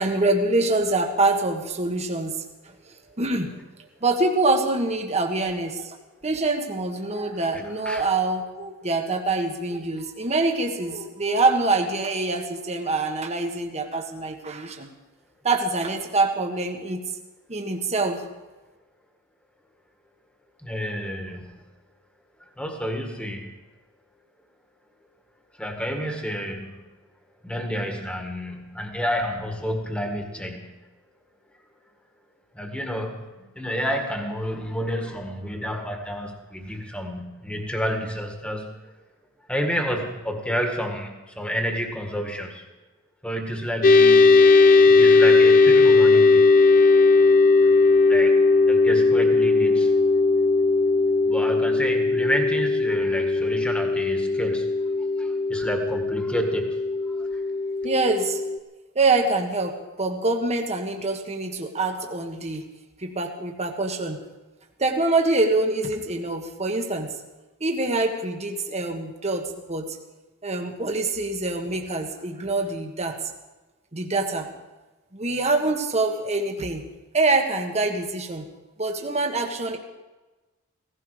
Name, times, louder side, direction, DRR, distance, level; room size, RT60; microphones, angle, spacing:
voice 1, 0.0-2.3 3.2-3.5 4.0-6.0 6.2-14.9 15.4-17.0 17.5-18.2 57.8-58.4 58.9-62.6 63.0-64.2 64.8-67.1 67.6-69.9 70.4-73.2 73.9-74.5 75.1-76.8 77.1-78.4 78.8-79.8, right 3 dB, 30° right, 3 dB, 1.5 m, -25 dB
voice 2, 7.5-8.1 20.6-21.6 22.4-23.5 25.5-26.8 27.4-30.8 32.5-38.9 39.5-42.7 43.2-44.4 44.9-46.5 47.6-47.7 48.1-49.9 51.3-54.7 55.0-56.8 57.1-57.4, equal, 5° left, 3 dB, 1.9 m, -30 dB
sound 1, 43.8-58.6, left 3 dB, 40° left, 0.6 m, -18 dB
17.0 x 16.0 x 5.0 m, 1.1 s
head